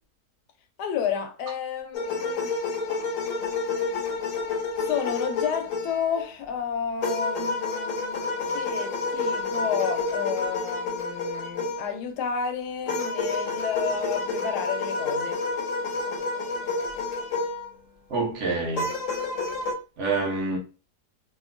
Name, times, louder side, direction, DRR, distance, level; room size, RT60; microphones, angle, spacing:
voice 1, 0.8-2.5 4.8-15.4, left 7 dB, 85° left, 1.2 m, -31 dB
sound 1, 1.9-6.2 7.0-12.0 12.9-17.7 18.7-19.7, left 3 dB, 65° left, 0.9 m, -29 dB
voice 2, 18.1-18.9 20.0-20.6, right 3 dB, 55° right, 1.0 m, -27 dB
2.8 x 2.4 x 2.5 m
omnidirectional pair, 1.7 m